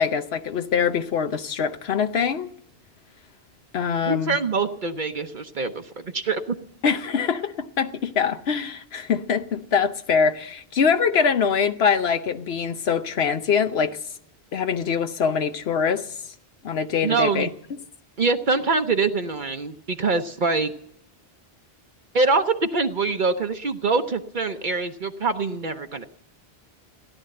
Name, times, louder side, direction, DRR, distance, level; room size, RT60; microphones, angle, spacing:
voice 1, 0.0-2.5 3.7-4.4 6.8-14.0 14.5-16.1 16.6-17.5, left 6 dB, 80° left, 1.0 m, -23 dB
voice 2, 4.1-6.6 17.0-17.5 18.2-20.7 22.1-26.0, right 4 dB, 55° right, 0.9 m, -24 dB
17.0 x 11.0 x 7.7 m
omnidirectional pair, 1.0 m